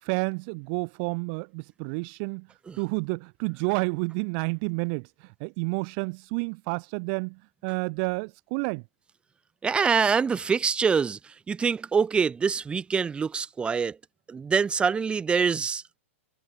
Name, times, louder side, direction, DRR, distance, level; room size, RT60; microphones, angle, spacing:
voice 1, 0.0-2.5 2.8-8.8, right 37 dB, 45° right, 0.9 m, -30 dB
voice 2, 9.6-14.0 14.3-16.0, right 6 dB, 15° right, 1.6 m, -25 dB
hypercardioid pair, 130°, 7 cm